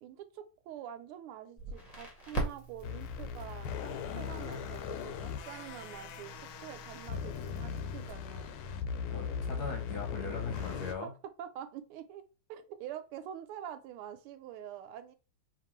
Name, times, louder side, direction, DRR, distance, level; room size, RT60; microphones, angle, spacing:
voice 1, 0.0-8.5 10.5-11.1 11.4-12.2 12.5-15.2, right 10 dB, 85° right, 1.5 m, -46 dB
Crackle, 1.6-8.1, right 2 dB, 25° left, 0.8 m, -43 dB
sound 1, 2.8-11.0, left 6 dB, 80° left, 1.4 m, -39 dB
voice 2, 9.1-11.1, left 4 dB, 60° left, 1.2 m, -40 dB
4.7 x 2.9 x 3.1 m
omnidirectional pair, 2.4 m